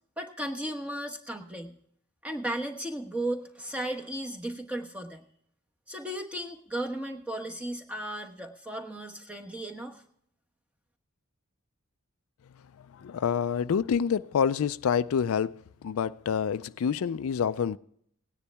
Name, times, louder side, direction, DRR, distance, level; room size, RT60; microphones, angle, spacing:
voice 1, 0.2-1.8 2.2-5.2 5.9-10.0, right 1 dB, 5° right, 1.1 m, -35 dB
voice 2, 12.9-17.8, left 7 dB, 75° left, 0.4 m, -27 dB
18.0 x 9.9 x 3.4 m
head